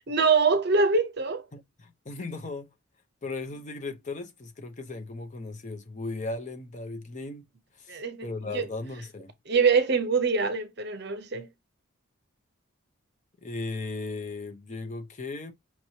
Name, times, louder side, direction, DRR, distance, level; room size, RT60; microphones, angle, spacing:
voice 1, 0.1-1.4 7.9-8.3 8.5-8.7 9.5-11.5, right 4 dB, 50° right, 0.7 m, -24 dB
voice 2, 1.5-2.7 3.2-7.5 7.8-9.3 13.4-15.5, left 3 dB, 35° left, 0.6 m, -37 dB
5.8 x 2.9 x 2.8 m
head